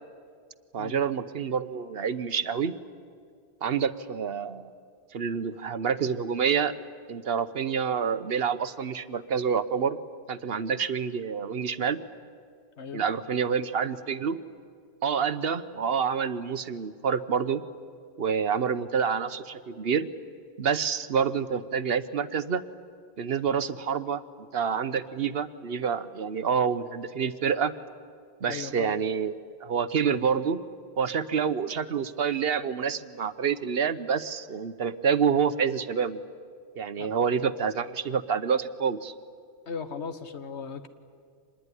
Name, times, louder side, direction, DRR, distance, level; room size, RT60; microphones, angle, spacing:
voice 1, 0.7-2.7 3.6-4.7 5.1-6.7 7.1-10.0 10.3-12.0 12.9-14.4 15.0-17.6 18.2-20.1 20.6-22.6 23.2-24.2 24.5-27.7 28.4-30.6 31.0-36.2 36.8-39.1, right 6 dB, 60° right, 12 dB, 1.0 m, -27 dB
voice 2, 28.4-28.9 37.0-37.1 39.7-40.9, left 6 dB, 75° left, 10 dB, 1.6 m, -37 dB
26.0 x 20.5 x 9.8 m, 2.3 s
omnidirectional pair, 1.2 m